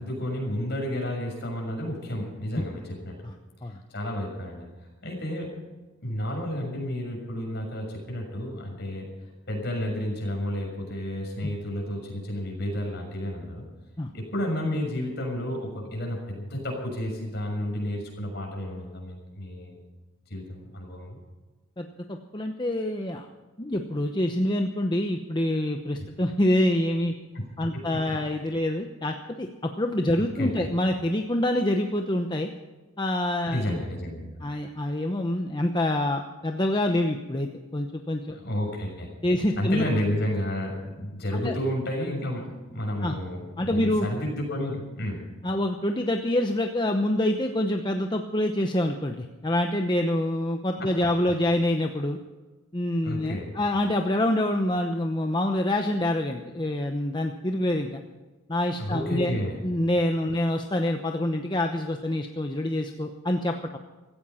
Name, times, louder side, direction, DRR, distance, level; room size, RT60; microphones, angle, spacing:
voice 1, 0.0-3.1 3.9-5.5 6.0-9.1 9.5-13.6 14.1-19.8 20.3-21.2 27.3-27.4 27.7-28.2 30.4-30.7 33.5-34.3 38.3-39.1 39.6-45.2 50.8-50.9 53.0-53.5 58.8-59.6, left 1 dB, 50° left, 1 dB, 6.5 m, -31 dB
voice 2, 21.8-23.3 23.6-27.1 27.6-32.5 33.0-33.8 34.4-38.3 39.2-39.9 41.3-41.5 43.0-43.2 43.6-44.1 45.4-52.2 52.7-58.0 58.5-63.8, left 1 dB, 20° left, 4 dB, 0.8 m, -26 dB
16.5 x 14.5 x 5.7 m, 1.2 s
head